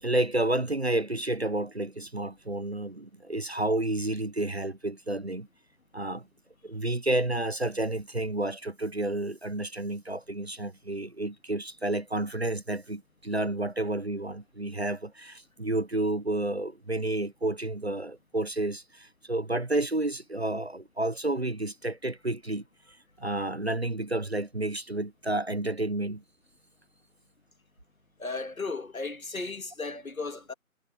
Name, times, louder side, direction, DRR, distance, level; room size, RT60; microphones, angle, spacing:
voice 1, 0.0-5.5 5.9-6.3 6.6-22.6 23.2-26.2, right 2 dB, 45° right, 0.7 m, -30 dB
voice 2, 28.2-30.5, left 3 dB, 70° left, 2.0 m, -35 dB
figure-of-eight pair, 175°, 43 cm